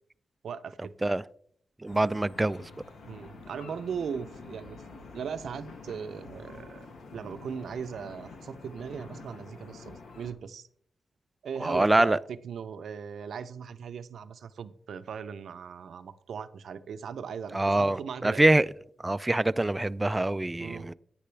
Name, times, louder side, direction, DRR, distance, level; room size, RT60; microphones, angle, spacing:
voice 1, 0.4-0.9 3.1-6.9 7.1-10.7 11.4-12.2 12.4-18.4 20.6-20.9, right 7 dB, 80° right, 0.6 m, -38 dB
voice 2, 1.8-2.6 11.6-12.2 17.5-18.7 19.0-20.9, right 2 dB, 20° right, 0.3 m, -24 dB
sound 1, 1.9-10.3, left 3 dB, 90° left, 1.4 m, -47 dB
10.0 x 9.5 x 3.3 m
cardioid pair, 80°, 0 cm